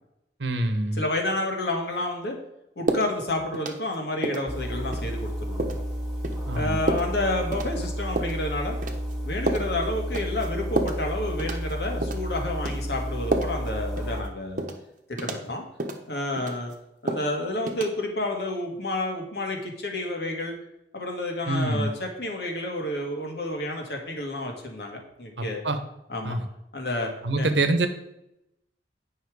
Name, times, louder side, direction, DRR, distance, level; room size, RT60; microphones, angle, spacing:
voice 1, 0.4-1.0 6.5-6.8 21.5-21.9 25.4-25.8 26.2-26.4 27.2-27.9, right 2 dB, 85° right, 9 dB, 1.1 m, -25 dB
voice 2, 1.0-2.4 2.8-5.7 6.5-8.8 9.2-14.6 15.1-15.7 16.1-16.7 17.0-20.5 20.9-25.6 26.1-26.4 26.7-27.1 27.4-27.5, left 1 dB, 65° left, 2 dB, 1.8 m, -30 dB
sound 1, 2.9-3.1 3.5-3.9 4.2-4.5 4.9-5.1 5.6-5.8 6.2-6.4 6.9-7.1 7.5-7.7 8.2-8.4 8.8-9.1 9.5-9.7 10.1-10.5 10.8-11.0 11.4-11.7 12.0-12.2 12.6-12.8 13.3-13.7 14.0-14.1 14.6-14.8 15.2-15.4 15.8-16.0 16.4-16.7 17.1-17.3 17.7-17.8, right 1 dB, 45° right, 1.0 m, -29 dB
sound 2, 4.5-14.2, equal, 5° right, 1.6 m, -32 dB
9.5 x 5.7 x 4.8 m, 0.85 s
head